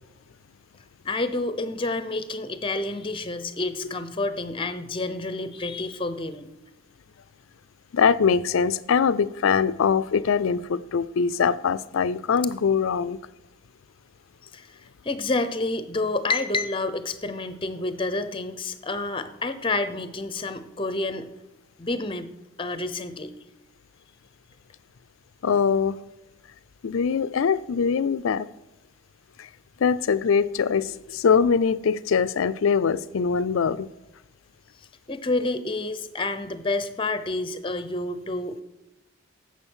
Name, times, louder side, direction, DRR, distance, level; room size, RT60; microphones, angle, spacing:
voice 1, 1.0-6.5 14.5-14.8 15.0-21.3 21.8-22.3 22.6-23.3 35.1-38.6, left 2 dB, 25° left, 11 dB, 0.6 m, -29 dB
voice 2, 7.9-13.2 25.4-26.0 26.8-28.5 29.4-29.5 29.8-33.9, left 6 dB, 80° left, 16 dB, 0.4 m, -22 dB
8.8 x 7.3 x 6.3 m, 0.98 s
head